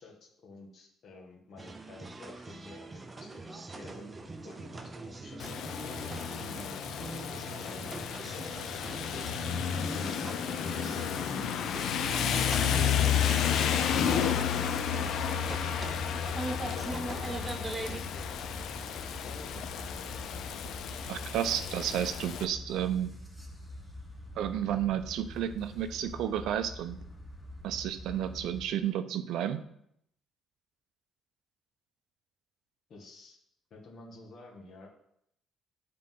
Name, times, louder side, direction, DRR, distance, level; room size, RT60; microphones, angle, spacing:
voice 1, 0.0-5.4 6.6-9.2 9.8-11.8 14.7-15.5 16.3-18.4 19.0-20.3 32.9-33.4 33.7-34.9, left 3 dB, 50° left, -1 dB, 1.6 m, -51 dB
sound 1, 1.6-18.0, right 2 dB, 20° right, 0.5 m, -42 dB
Rain, 5.4-22.4, left 8 dB, 70° left, 0.5 m, -32 dB
sound 2, 13.8-28.7, left 1 dB, ahead, 0.9 m, -45 dB
voice 2, 21.1-23.1 24.4-27.0 27.6-29.6, right 10 dB, 80° right, 11 dB, 0.5 m, -32 dB
9.3 x 3.8 x 3.8 m, 0.74 s
cardioid pair, 135°, 0 cm